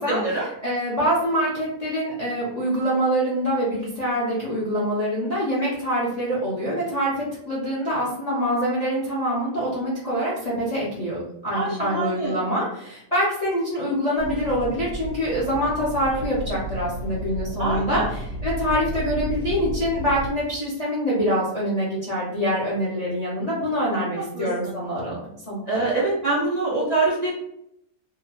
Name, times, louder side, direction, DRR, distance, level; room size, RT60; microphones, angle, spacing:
voice 1, 0.0-0.5 11.5-12.4 17.6-18.1 24.3-24.7 25.7-27.3, right 3 dB, 75° right, -6 dB, 0.3 m, -25 dB
voice 2, 0.6-25.2 25.5-25.9, equal, 40° left, -7 dB, 0.6 m, -25 dB
sound 1, 14.2-20.3, equal, 65° left, 0.9 m, -32 dB
2.8 x 2.2 x 2.8 m, 0.77 s
omnidirectional pair, 1.5 m